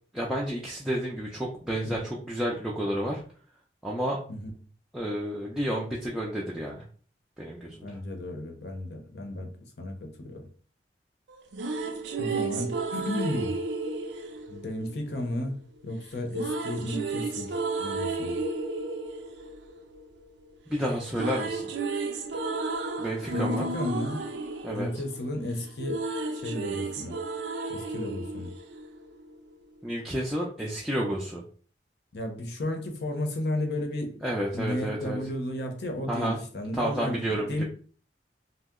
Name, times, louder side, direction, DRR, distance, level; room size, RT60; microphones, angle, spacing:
voice 1, 0.1-3.2 3.8-4.2 4.9-6.9 7.4-8.0 20.7-21.7 23.0-23.7 24.6-24.9 29.8-31.4 34.2-35.2 36.1-36.4 36.8-37.6, equal, 5° right, 0.4 m, -30 dB
voice 2, 7.8-9.5 9.8-10.5 12.2-13.6 14.5-18.4 23.3-24.2 24.7-26.0 26.3-27.2 27.7-28.5 32.1-34.2 34.5-37.6, left 1 dB, 65° left, 0.7 m, -33 dB
sound 1, 11.3-15.4 16.3-20.5 20.8-29.3, right 3 dB, 85° right, 0.5 m, -33 dB
2.7 x 2.0 x 3.5 m
head